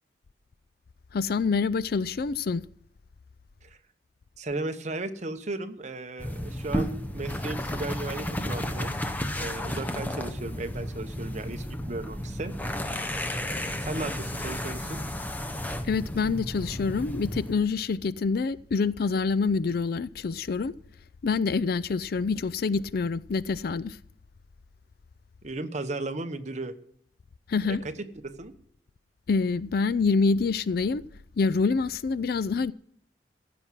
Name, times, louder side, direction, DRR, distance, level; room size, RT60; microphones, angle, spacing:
voice 1, 1.1-2.6 15.8-20.7 21.2-24.0 27.5-27.8 29.3-31.0 31.4-32.7, left 4 dB, 55° left, 0.4 m, -26 dB
voice 2, 4.4-8.9 9.4-12.5 13.8-15.0 25.4-26.7 27.7-27.9 28.2-28.5, right 2 dB, 40° right, 0.9 m, -35 dB
sound 1, 6.2-17.5, left 1 dB, 10° left, 0.8 m, -33 dB
15.0 x 6.1 x 7.3 m
head